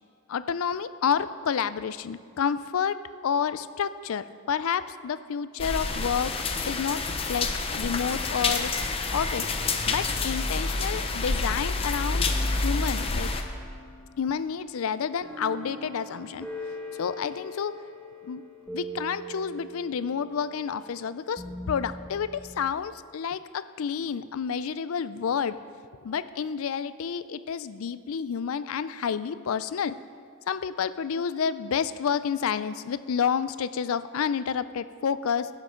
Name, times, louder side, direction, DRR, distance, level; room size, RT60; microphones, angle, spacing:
voice 1, 0.3-6.4 6.6-8.7 9.1-9.5 9.9-12.3 12.6-13.3 14.2-16.5 17.0-17.7 18.2-18.4 18.7-25.6 26.0-30.0 30.5-35.5, left 7 dB, 75° left, 14 dB, 0.4 m, -29 dB
sound 1, 5.6-13.4, left 3 dB, 25° left, 0.6 m, -28 dB
sound 2, 12.3-22.7, equal, 5° left, 1.2 m, -43 dB
17.0 x 7.4 x 3.8 m, 2.1 s
head